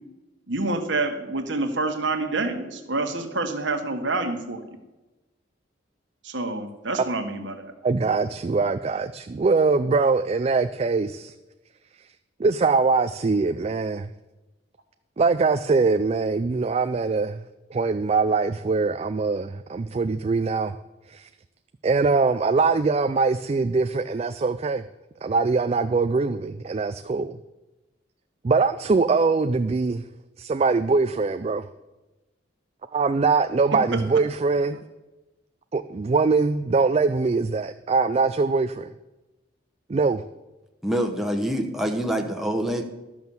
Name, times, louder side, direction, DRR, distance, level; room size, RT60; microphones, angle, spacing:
voice 1, 0.5-4.6 6.2-7.7 33.9-34.0, right 2 dB, 70° right, 5 dB, 1.4 m, -27 dB
voice 2, 7.8-11.3 12.4-14.1 15.2-17.4 17.7-20.7 21.1-21.3 21.8-24.8 25.2-27.4 28.4-30.0 30.4-31.7 32.9-34.8 35.7-38.9 39.9-40.2, right 4 dB, 30° right, 9 dB, 0.3 m, -22 dB
voice 3, 40.8-42.8, right 1 dB, ahead, 3 dB, 0.9 m, -25 dB
12.5 x 6.1 x 7.0 m, 1.1 s
head